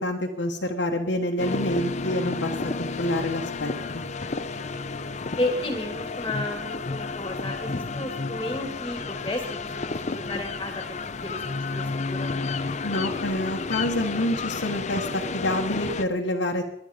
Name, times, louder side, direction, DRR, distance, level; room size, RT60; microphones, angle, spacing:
voice 1, 0.0-2.5 2.8-3.7 12.8-16.6, left 1 dB, 70° left, -1 dB, 1.4 m, -27 dB
sound 1, 1.4-16.1, left 3 dB, 40° left, 0.7 m, -31 dB
voice 2, 5.4-9.4 9.9-12.3, left 1 dB, 20° left, 4 dB, 2.2 m, -32 dB
21.0 x 10.5 x 5.1 m, 0.82 s
head